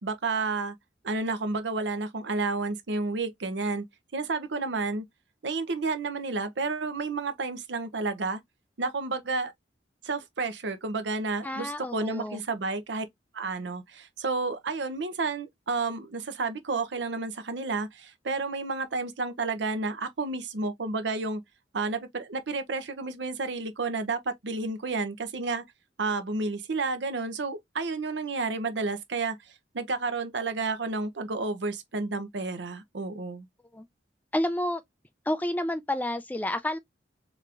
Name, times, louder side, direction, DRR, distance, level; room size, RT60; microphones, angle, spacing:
voice 1, 0.0-0.7 1.0-3.8 4.1-5.0 5.4-8.4 8.8-9.5 10.0-13.1 13.3-21.4 21.7-25.6 26.0-29.4 29.7-33.5, right 3 dB, 75° right, 0.7 m, -31 dB
voice 2, 11.4-12.4 33.7-33.9 34.3-34.8 35.3-36.8, left 1 dB, 10° left, 0.3 m, -30 dB
3.4 x 3.0 x 2.4 m
head